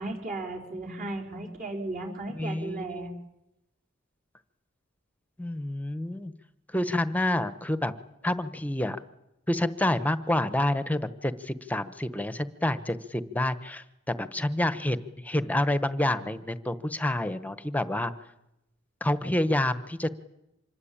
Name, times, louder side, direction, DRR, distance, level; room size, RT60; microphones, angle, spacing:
voice 1, 0.0-3.1, right 2 dB, 40° right, -1 dB, 5.0 m, -35 dB
voice 2, 2.4-3.1 5.4-6.3 6.7-7.9 8.2-9.0 9.5-18.1 19.0-20.1, left 1 dB, 10° left, 13 dB, 1.1 m, -28 dB
26.0 x 21.5 x 8.8 m, 0.89 s
head